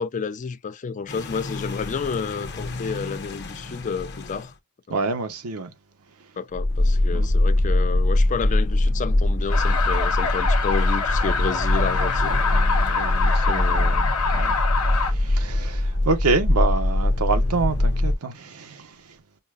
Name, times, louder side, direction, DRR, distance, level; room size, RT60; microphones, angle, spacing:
voice 1, 0.0-4.5 4.9-5.0 6.4-12.5 13.5-14.1, left 5 dB, 35° left, 0.4 m, -30 dB
sound 1, 1.1-4.5 6.5-18.2, left 1 dB, 50° left, 0.8 m, -23 dB
voice 2, 4.9-5.7 7.1-7.3 12.3-14.6 15.0-18.9, right 3 dB, 85° right, 0.9 m, -27 dB
sound 2, 9.5-15.1, left 5 dB, 90° left, 1.1 m, -25 dB
5.4 x 2.1 x 2.4 m
head